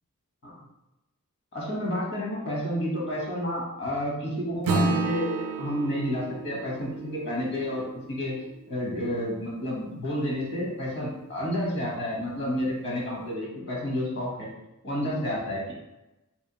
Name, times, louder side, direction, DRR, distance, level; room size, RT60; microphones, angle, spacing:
voice 1, 1.5-8.3 8.7-14.5 14.8-15.7, equal, 55° left, -4 dB, 1.2 m, -30 dB
Acoustic guitar / Strum, 4.6-9.4, right 3 dB, 75° right, 0.4 m, -31 dB
3.4 x 3.3 x 2.9 m, 0.97 s
head